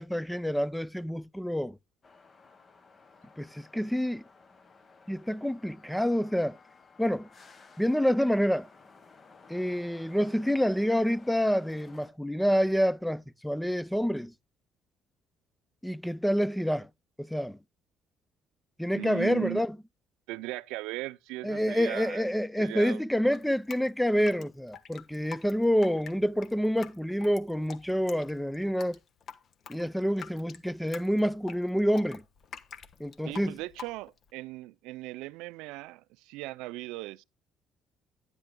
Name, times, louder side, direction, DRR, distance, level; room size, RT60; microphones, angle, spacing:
voice 1, 0.0-1.8 3.4-4.2 5.1-6.6 7.0-7.3 7.8-8.7 9.5-14.3 15.8-16.9 17.2-17.6 18.8-19.8 21.4-29.0 29.7-32.2 33.0-33.5, equal, 5° left, 0.4 m, -27 dB
sound 1, 2.0-12.1, left 4 dB, 35° left, 1.3 m, -56 dB
voice 2, 18.9-19.6 20.3-22.3 22.6-23.0 33.2-37.2, right 19 dB, 90° right, 0.4 m, -38 dB
Drip, 23.3-34.3, left 7 dB, 50° left, 1.1 m, -47 dB
11.5 x 9.8 x 2.2 m
cardioid pair, 90°, 0 cm